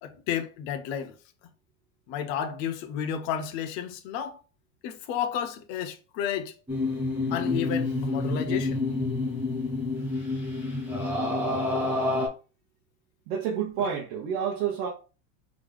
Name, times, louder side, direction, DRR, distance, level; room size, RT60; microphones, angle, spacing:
voice 1, 0.0-1.1 2.1-4.4 4.8-6.5 7.3-8.8, left 9 dB, 40° left, 0.5 m, -32 dB
sound 1, 6.7-12.3, left 2 dB, 5° right, 0.9 m, -28 dB
voice 2, 13.3-14.9, right 8 dB, 50° right, 1.0 m, -29 dB
3.6 x 3.2 x 3.6 m
supercardioid pair, 175°, 40 cm